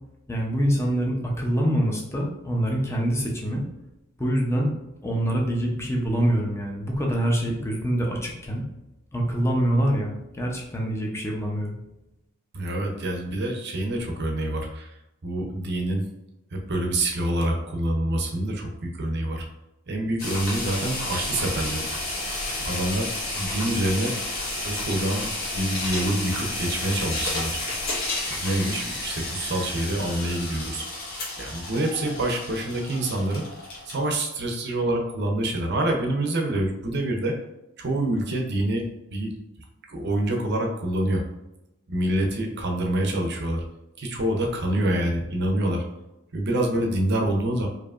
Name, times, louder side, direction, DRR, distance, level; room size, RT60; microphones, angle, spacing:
voice 1, 0.3-3.6 4.2-4.7 5.0-8.6 9.1-11.7, equal, 10° left, -1 dB, 0.6 m, -25 dB
voice 2, 12.5-15.0 15.2-16.0 16.5-19.5 19.9-21.9 22.6-23.1 23.3-24.1 24.6-25.3 25.5-27.6 28.3-30.9 31.4-33.5 33.8-37.4 37.8-38.8 39.1-39.3 39.9-41.2 41.9-43.6 44.0-45.8 46.3-47.7, right 1 dB, 50° right, 2 dB, 0.7 m, -26 dB
sound 1, 20.2-34.1, left 2 dB, 45° left, 1.2 m, -31 dB
4.8 x 2.8 x 2.4 m, 0.94 s
head